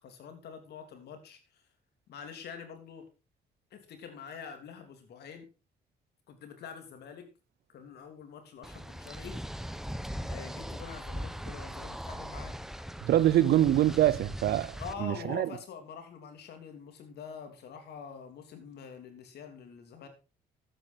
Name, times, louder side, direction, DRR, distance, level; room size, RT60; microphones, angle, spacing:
voice 1, 0.0-1.6 2.1-3.1 3.7-5.5 6.3-7.3 7.7-9.4 10.2-12.6 13.4-13.5 14.8-20.1, left 6 dB, 75° left, 3.2 m, -45 dB
sound 1, 8.6-14.9, equal, ahead, 1.1 m, -40 dB
voice 2, 13.0-15.5, right 12 dB, 70° right, 0.7 m, -25 dB
12.5 x 9.2 x 4.2 m
supercardioid pair, 70°, 17 cm